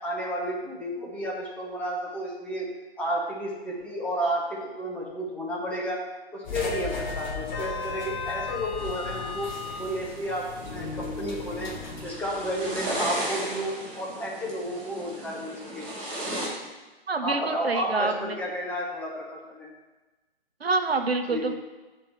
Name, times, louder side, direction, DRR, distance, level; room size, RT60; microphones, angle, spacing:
voice 1, 0.0-2.7 3.0-6.0 6.3-9.5 9.8-11.7 12.0-15.9 17.2-19.7 21.3-21.5, equal, 5° left, -4 dB, 0.7 m, -32 dB
sound 1, 6.4-13.0, left 4 dB, 45° left, 1.5 m, -35 dB
sound 2, 8.8-16.5, right 1 dB, 20° right, 2.7 m, -36 dB
voice 2, 17.1-18.4 20.6-21.5, right 3 dB, 75° right, 7 dB, 0.9 m, -27 dB
6.4 x 4.4 x 6.6 m, 1.2 s
figure-of-eight pair, 135°, 31 cm